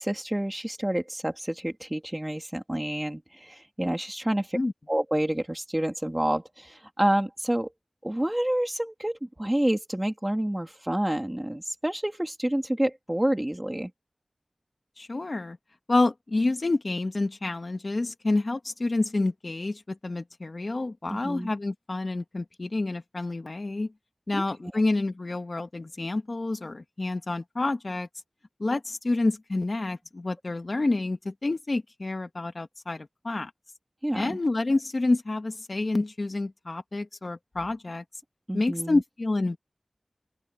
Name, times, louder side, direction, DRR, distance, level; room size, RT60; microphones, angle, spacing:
voice 1, 0.0-4.6 4.9-7.7 8.0-13.9 21.1-21.5 24.6-24.7 34.0-34.4 38.5-39.0, right 1 dB, 20° right, 3.5 m, -28 dB
voice 2, 15.0-15.6 15.9-23.9 24.3-28.1 28.6-33.5 34.1-38.0 38.5-39.6, left 2 dB, 65° left, 1.9 m, -28 dB
open air
wide cardioid pair, 50°, 0 cm